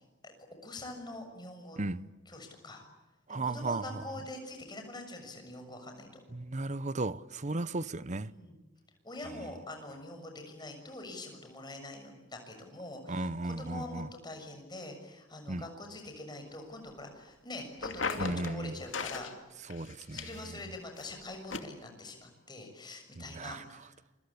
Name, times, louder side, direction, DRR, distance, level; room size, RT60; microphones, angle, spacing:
voice 1, 0.6-1.8 2.3-2.8 3.3-6.2 8.2-8.5 9.0-19.3 20.1-23.9, left 2 dB, 20° left, 6.7 m, -44 dB
voice 2, 1.8-2.1 3.3-4.0 6.3-8.3 13.1-14.1 15.5-15.6 18.2-18.8 19.7-20.6 23.2-23.6, right 2 dB, 40° right, 0.9 m, -35 dB
sound 1, 17.8-18.6 18.9-19.3 19.7-20.6 21.0-21.1 21.5-21.6, left 4 dB, 75° left, 2.6 m, -36 dB
27.5 x 24.5 x 8.6 m
head